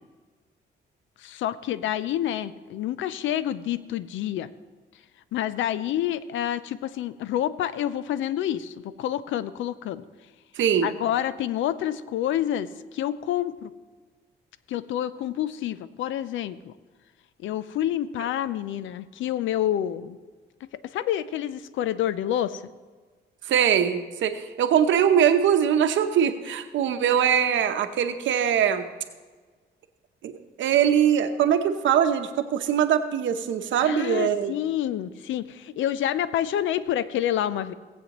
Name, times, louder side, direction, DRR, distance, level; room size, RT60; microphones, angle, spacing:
voice 1, 1.2-4.5 5.3-10.0 10.8-13.7 14.7-16.7 17.4-20.2 20.9-22.6 33.8-37.7, left 11 dB, 75° left, 15 dB, 0.5 m, -28 dB
voice 2, 10.6-10.9 23.5-28.9 30.2-30.3 30.6-34.5, right 9 dB, 75° right, 8 dB, 0.9 m, -22 dB
18.0 x 8.2 x 3.0 m, 1.4 s
cardioid pair, 90°, 20 cm